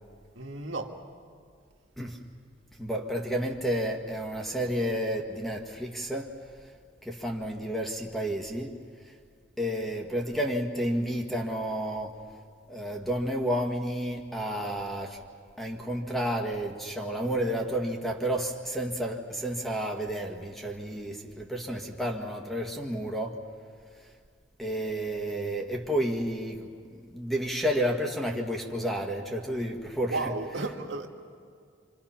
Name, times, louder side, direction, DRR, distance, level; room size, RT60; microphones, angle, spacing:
voice 1, 0.4-0.9 30.0-31.1, right 3 dB, 80° right, 2.0 m, -33 dB
voice 2, 2.8-6.4 7.0-8.8 9.6-12.2 12.7-15.2 15.6-23.4 24.6-30.2, equal, ahead, 1.7 m, -31 dB
27.5 x 27.0 x 5.8 m
head